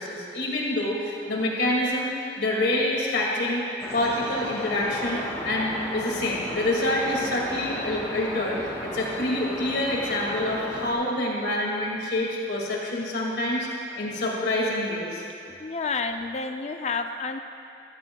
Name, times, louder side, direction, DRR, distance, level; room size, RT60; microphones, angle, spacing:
voice 1, 0.0-3.6 3.9-13.7 14.0-15.2, left 1 dB, 65° left, -3 dB, 2.2 m, -27 dB
sound 1, 3.8-10.9, left 1 dB, 15° left, 1.6 m, -35 dB
voice 2, 15.5-17.4, left 4 dB, 35° left, 7 dB, 0.4 m, -30 dB
16.5 x 13.0 x 2.3 m, 2.7 s
head